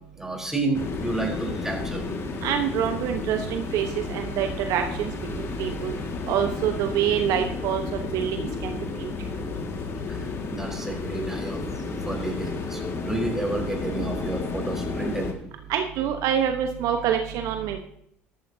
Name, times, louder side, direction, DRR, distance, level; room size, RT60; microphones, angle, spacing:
voice 1, 0.2-2.0 10.1-11.6 12.1-15.3, right 2 dB, 5° right, 0 dB, 4.1 m, -30 dB
sound 1, 0.7-15.3, left 4 dB, 40° left, 2.0 m, -32 dB
voice 2, 2.4-5.9 6.3-9.1 15.7-17.8, right 9 dB, 60° right, 6 dB, 1.1 m, -26 dB
14.0 x 13.0 x 2.8 m, 0.71 s
hypercardioid pair, 70°, 7 cm